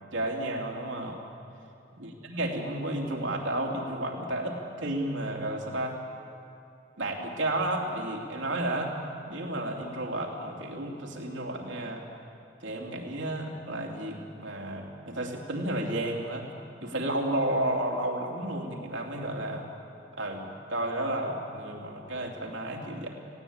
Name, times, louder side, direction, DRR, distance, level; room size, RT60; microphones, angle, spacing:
voice 1, 0.1-1.2 2.0-6.0 7.0-8.9 9.3-12.0 12.6-16.5 16.8-19.6 20.2-23.1, right 1 dB, 85° right, 0 dB, 2.9 m, -32 dB
19.0 x 17.0 x 8.8 m, 2.6 s
head